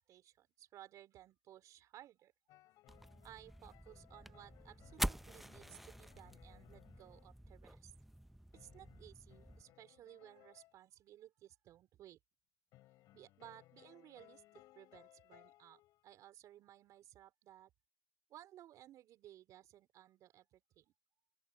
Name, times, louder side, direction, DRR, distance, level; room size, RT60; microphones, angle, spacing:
voice 1, 0.0-2.3 3.2-7.9 8.5-12.2 13.1-17.7 18.3-20.9, right 12 dB, 50° right, 4.2 m, -59 dB
sound 1, 2.5-7.3 8.5-10.7 12.7-16.2, left 16 dB, 60° left, 5.2 m, -65 dB
sound 2, 2.9-9.6, right 1 dB, ahead, 0.6 m, -46 dB
open air
supercardioid pair, 115°, 7 cm